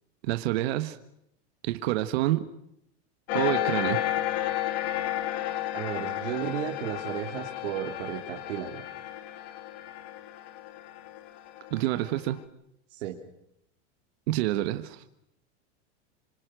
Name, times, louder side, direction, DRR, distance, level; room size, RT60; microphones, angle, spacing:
voice 1, 0.2-1.0 1.6-2.5 3.3-4.0 11.7-12.4 14.3-15.0, right 15 dB, 60° right, 9 dB, 1.6 m, -27 dB
sound 1, 3.3-12.3, left 13 dB, 55° left, 2.0 m, -32 dB
voice 2, 5.7-8.8 12.9-13.2, right 11 dB, 75° right, 1 dB, 3.3 m, -34 dB
27.5 x 24.5 x 6.4 m, 0.77 s
supercardioid pair, 165°, 37 cm